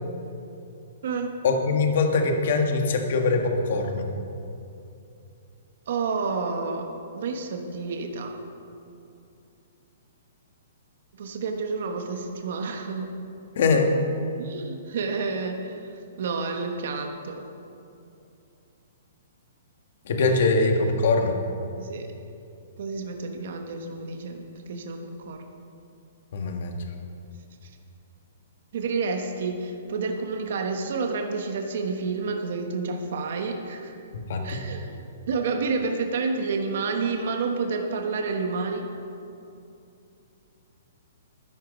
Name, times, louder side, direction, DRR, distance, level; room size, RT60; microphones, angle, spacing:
voice 1, 1.4-4.1 13.5-13.9 20.1-21.3 26.3-26.7 34.3-34.6, left 3 dB, 50° left, 3 dB, 1.6 m, -22 dB
voice 2, 5.9-6.9 7.1-8.3 11.2-13.1 14.4-17.4 21.8-22.1 22.8-25.4 28.7-33.9 34.4-38.9, right 4 dB, 50° right, 3 dB, 1.2 m, -29 dB
12.0 x 11.0 x 5.3 m, 2.7 s
hypercardioid pair, 170°, 0 cm